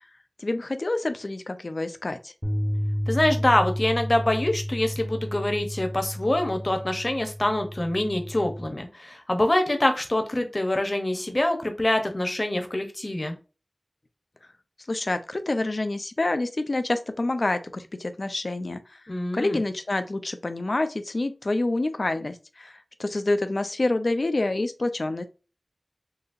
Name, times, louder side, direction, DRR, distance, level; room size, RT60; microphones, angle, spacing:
voice 1, 0.4-2.3 14.9-19.0 19.3-25.2, left 2 dB, 65° left, 9 dB, 0.5 m, -27 dB
sound 1, 2.4-8.7, equal, ahead, 0.7 m, -31 dB
voice 2, 3.1-13.4 19.1-19.6, left 1 dB, 40° left, 5 dB, 0.8 m, -25 dB
3.9 x 2.8 x 2.6 m, 0.33 s
wide cardioid pair, 55°, 0 cm